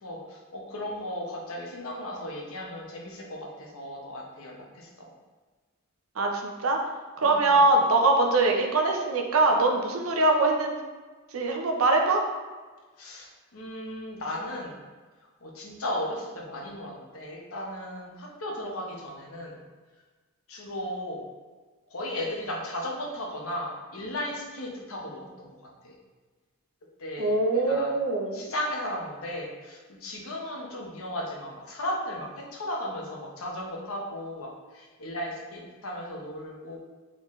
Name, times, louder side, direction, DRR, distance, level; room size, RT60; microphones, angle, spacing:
voice 1, 0.0-4.9 7.2-7.6 13.0-14.8 15.4-19.6 20.5-21.2 21.9-25.5 25.8-26.0 27.0-27.9 28.3-34.5 34.7-36.8, left 1 dB, 70° left, -2 dB, 1.0 m, -36 dB
voice 2, 6.2-6.8 7.2-10.7 11.3-12.2 27.2-28.4, right 2 dB, 70° right, 2 dB, 0.7 m, -23 dB
4.0 x 3.9 x 3.1 m, 1.4 s
head